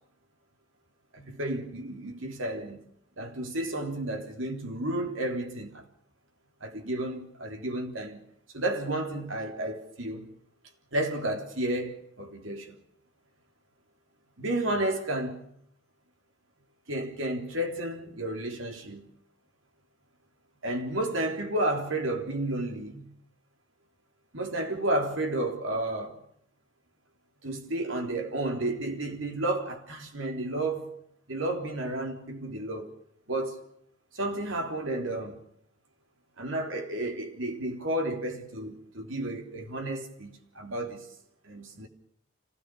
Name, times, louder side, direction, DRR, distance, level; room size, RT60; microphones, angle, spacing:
voice 1, 1.1-2.8 3.2-5.8 6.6-8.2 8.5-10.3 10.9-12.7 14.4-15.4 16.9-19.1 20.6-23.1 24.3-26.2 27.4-30.9 31.3-32.9 33.3-33.6 34.1-35.4 36.4-41.1 41.4-41.9, right 1 dB, 85° right, 3.5 m, -32 dB
26.0 x 17.0 x 7.0 m
head